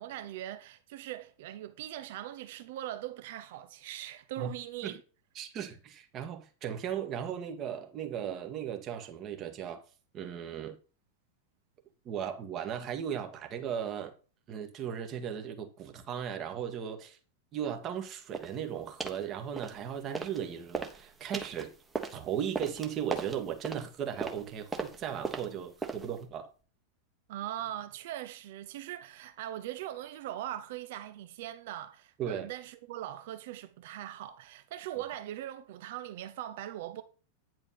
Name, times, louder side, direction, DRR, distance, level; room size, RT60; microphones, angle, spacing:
voice 1, 0.0-5.0 27.3-37.0, right 13 dB, 50° right, 0.7 m, -40 dB
voice 2, 5.4-9.8 10.1-10.8 12.1-14.1 14.5-17.2 17.5-21.7 22.1-26.5 32.2-32.5, right 9 dB, 30° right, 1.7 m, -37 dB
sound 1, 18.3-18.6 19.0-19.2 19.6-20.4 20.7-26.2, right 4 dB, 15° right, 1.3 m, -38 dB
9.8 x 5.0 x 5.6 m
figure-of-eight pair, 90°, 0 cm